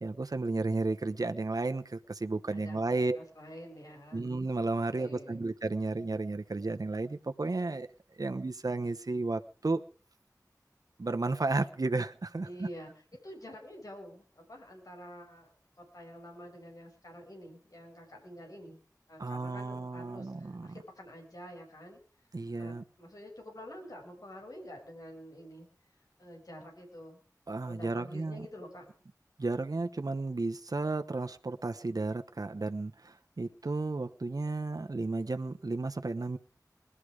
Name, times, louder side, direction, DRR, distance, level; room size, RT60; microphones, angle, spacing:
voice 1, 0.0-3.2 4.1-7.9 8.2-9.8 11.0-12.7 19.2-20.7 22.3-22.8 27.5-28.5 29.4-36.4, right 3 dB, 65° right, 7 dB, 1.0 m, -33 dB
voice 2, 2.5-4.2 4.9-5.5 12.4-12.9 13.2-18.8 19.1-22.0 22.6-25.7 26.2-27.2 27.6-28.9, equal, 65° left, 1 dB, 6.1 m, -48 dB
21.0 x 12.5 x 4.9 m, 0.41 s
wide cardioid pair, 55°, 7 cm